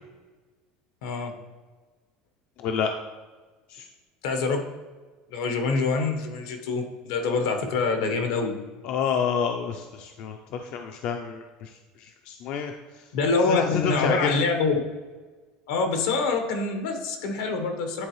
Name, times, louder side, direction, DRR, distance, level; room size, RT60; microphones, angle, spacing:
voice 1, 1.0-1.3 4.2-4.6 5.3-8.6 13.1-14.7 15.7-18.1, left 4 dB, 80° left, 4 dB, 1.1 m, -25 dB
voice 2, 2.6-2.9 3.7-3.9 8.8-13.0 13.5-14.3, left 7 dB, 50° left, 5 dB, 0.4 m, -29 dB
9.9 x 4.0 x 3.1 m, 1.3 s
cardioid pair, 155°, 2 cm